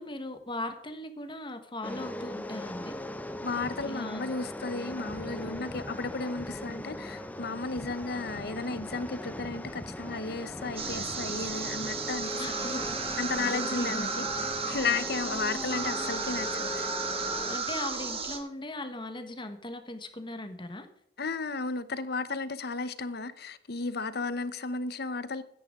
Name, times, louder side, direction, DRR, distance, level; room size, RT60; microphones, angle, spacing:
voice 1, 0.0-3.0 3.8-4.2 5.4-5.6 12.4-14.0 14.7-14.8 17.5-20.9, left 1 dB, 30° left, 1.4 m, -39 dB
sound 1, 1.8-17.6, left 1 dB, 10° left, 0.7 m, -39 dB
voice 2, 3.4-12.7 13.2-17.0 21.2-25.4, left 4 dB, 60° left, 0.9 m, -34 dB
sound 2, 10.8-18.4, right 4 dB, 35° right, 1.8 m, -34 dB
13.5 x 10.5 x 3.7 m
head